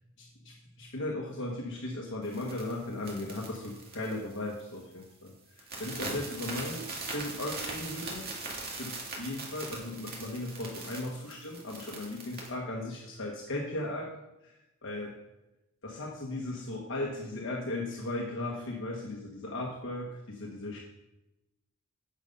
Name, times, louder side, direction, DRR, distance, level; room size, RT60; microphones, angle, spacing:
voice 1, 0.2-8.3 8.7-14.1 14.4-14.5 14.8-15.2 15.8-20.8, left 2 dB, 65° left, -2 dB, 1.3 m, -37 dB
sound 1, 2.2-4.7 5.0-5.3 5.6-12.5, right 3 dB, 50° right, 2.2 m, -41 dB
9.0 x 6.8 x 5.4 m, 0.94 s
head